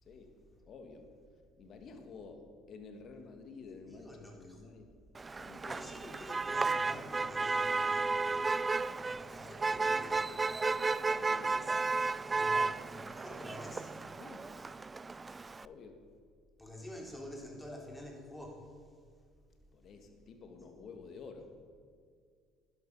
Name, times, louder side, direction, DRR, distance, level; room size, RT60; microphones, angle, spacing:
voice 1, 0.7-1.0 1.6-4.9 5.4-6.2 11.1-11.7 14.2-14.5 15.6-16.0 19.7-21.5, left 4 dB, 55° left, 6 dB, 1.8 m, -51 dB
voice 2, 3.9-4.8 5.7-8.5 9.0-10.3 11.5-11.8 12.3-14.0 16.6-18.9, left 1 dB, 10° left, -1 dB, 3.6 m, -48 dB
Motor vehicle (road), 5.1-15.6, right 3 dB, 25° right, 0.3 m, -33 dB
12.0 x 11.0 x 5.5 m, 2.1 s
supercardioid pair, 80°, 0 cm